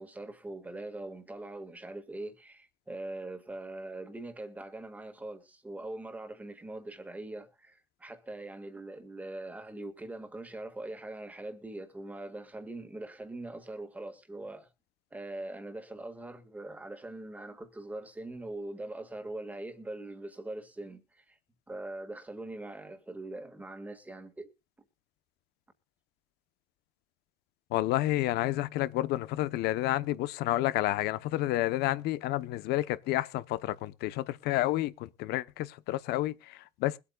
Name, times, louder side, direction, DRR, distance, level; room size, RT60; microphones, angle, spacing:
voice 1, 0.0-14.7 15.1-21.4 21.7-24.5, right 2 dB, 10° right, 1.7 m, -42 dB
voice 2, 27.7-37.0, left 16 dB, 85° left, 0.8 m, -30 dB
23.0 x 8.4 x 2.3 m
cardioid pair, 165°, 16 cm